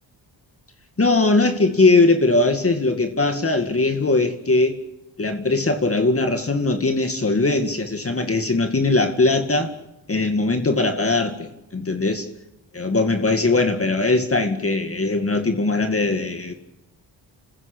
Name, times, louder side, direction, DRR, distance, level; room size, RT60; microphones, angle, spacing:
voice 1, 1.0-4.7 5.2-9.7 10.1-12.3 12.7-16.5, left 3 dB, 30° left, 6 dB, 2.3 m, -20 dB
28.0 x 15.5 x 8.7 m, 0.93 s
cardioid pair, 75°, 45 cm